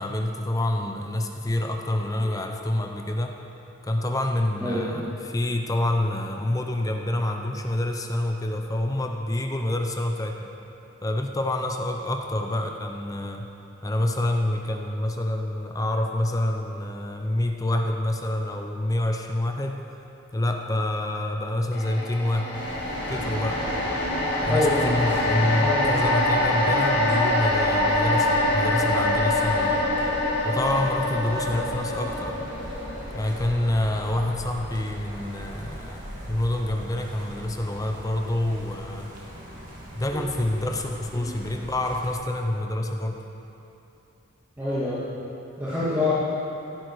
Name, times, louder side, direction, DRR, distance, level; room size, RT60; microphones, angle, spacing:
voice 1, 0.0-3.4 3.8-10.5 11.0-13.4 13.8-19.8 20.3-22.5 23.1-23.6 24.4-29.8 30.4-32.4 33.1-36.0 36.3-39.1 39.9-43.2, left 1 dB, 15° left, 3 dB, 0.6 m, -27 dB
sound 1, 21.7-36.1 36.4-36.6, left 1 dB, 50° left, 2.3 m, -26 dB
sound 2, 22.5-42.1, equal, 40° right, 2.2 m, -37 dB
voice 2, 24.4-24.9 25.6-25.9 40.5-40.6 41.1-41.3 44.6-45.0 45.6-46.1, left 2 dB, 10° right, -13 dB, 2.3 m, -26 dB
15.5 x 10.5 x 4.7 m, 2.9 s
head